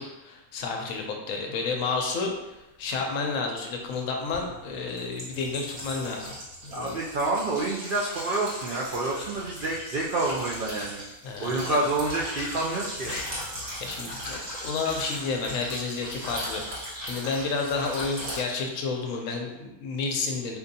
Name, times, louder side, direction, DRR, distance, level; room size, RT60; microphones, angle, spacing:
voice 1, 0.0-6.3 6.6-7.0 11.2-11.8 13.1-13.3 13.8-20.6, left 4 dB, 75° left, 2 dB, 0.9 m, -31 dB
sound 1, 3.0-3.1 4.3-18.4, equal, 30° right, 1.0 m, -38 dB
voice 2, 6.7-11.0 11.4-13.1, right 2 dB, 80° right, -4 dB, 0.4 m, -28 dB
4.4 x 2.5 x 2.6 m, 0.98 s
omnidirectional pair, 1.5 m